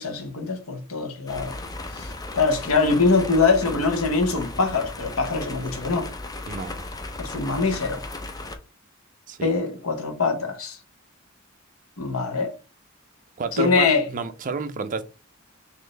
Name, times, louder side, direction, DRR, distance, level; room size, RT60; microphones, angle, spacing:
voice 1, 0.0-1.6 1.9-6.1 7.2-8.0 9.4-10.8 12.0-12.5 13.5-14.0, left 4 dB, 80° left, 0.9 m, -23 dB
sound 1, 1.3-8.6, left 2 dB, 20° left, 0.4 m, -36 dB
voice 2, 13.4-15.0, right 4 dB, 40° right, 0.5 m, -29 dB
4.1 x 2.6 x 3.2 m
head